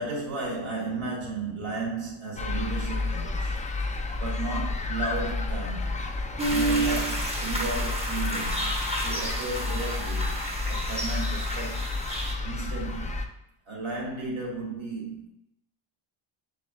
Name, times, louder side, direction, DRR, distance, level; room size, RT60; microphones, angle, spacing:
voice 1, 0.0-3.5 3.9-5.9 6.5-11.9 12.4-13.2 13.7-15.3, right 3 dB, 80° right, 1.8 m, -34 dB
sound 1, 2.4-13.3, left 3 dB, 20° left, 0.3 m, -31 dB
sound 2, 6.4-12.3, right 2 dB, 15° right, 0.9 m, -30 dB
6.6 x 3.6 x 2.2 m
wide cardioid pair, 115°, 48 cm